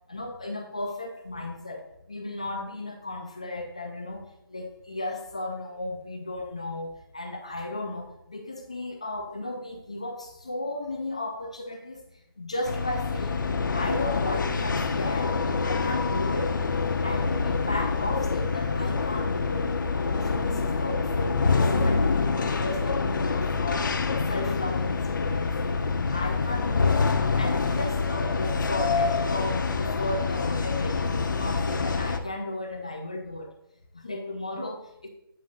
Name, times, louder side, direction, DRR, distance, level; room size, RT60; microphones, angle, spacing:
voice 1, 0.1-4.2 4.5-12.0 12.4-13.4 13.7-15.4 15.6-16.6 17.0-19.7 20.1-25.8 26.1-27.1 27.4-33.5 33.9-35.1, left 2 dB, 15° left, 3 dB, 0.3 m, -35 dB
sound 1, 12.7-32.2, left 4 dB, 55° left, 0.6 m, -26 dB
7.7 x 2.7 x 5.0 m, 0.80 s
figure-of-eight pair, 170°, 13 cm